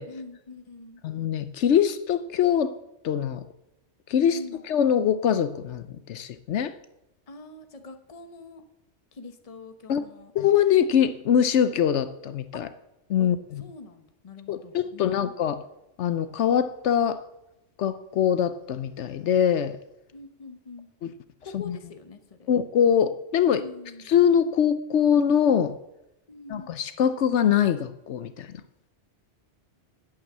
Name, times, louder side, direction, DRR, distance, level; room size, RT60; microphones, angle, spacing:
voice 1, 0.1-1.0 4.3-4.6 7.3-8.6 9.1-10.3 12.5-12.6 13.2-13.3 13.6-15.3 20.1-20.9 21.4-22.5 23.6-24.1 26.3-26.8, left 3 dB, 30° left, 8 dB, 1.1 m, -44 dB
voice 2, 1.0-2.7 3.0-3.4 4.1-4.4 4.7-6.7 9.9-10.0 10.3-12.7 13.1-13.6 14.5-15.6 16.0-17.2 17.8-19.8 21.0-21.1 21.5-21.8 22.5-23.7 24.1-25.8 26.5-28.5, left 8 dB, 75° left, 12 dB, 1.0 m, -23 dB
9.2 x 8.7 x 7.3 m, 0.87 s
omnidirectional pair, 1.2 m